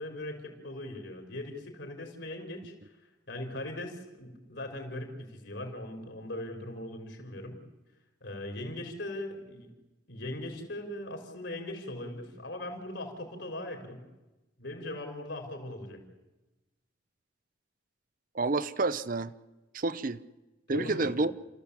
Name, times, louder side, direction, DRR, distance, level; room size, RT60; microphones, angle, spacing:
voice 1, 0.0-2.7 3.3-7.6 8.2-9.7 10.1-14.0 14.6-16.0 20.7-21.2, left 1 dB, 65° left, 4.8 m, -39 dB
voice 2, 18.3-19.3 19.7-20.2 20.7-21.3, right 3 dB, 45° right, 0.7 m, -29 dB
30.0 x 14.5 x 8.5 m
head